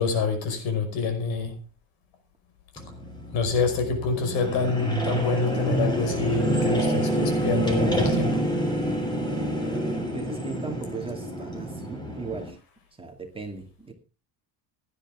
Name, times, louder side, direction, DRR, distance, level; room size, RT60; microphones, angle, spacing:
voice 1, 0.0-1.6 3.3-8.4, left 4 dB, 75° left, 5.4 m, -26 dB
sound 1, 2.8-12.5, right 1 dB, 10° left, 3.2 m, -27 dB
voice 2, 10.1-12.6 13.0-13.9, right 4 dB, 10° right, 2.3 m, -37 dB
17.0 x 11.0 x 3.6 m
cardioid pair, 160°, 47 cm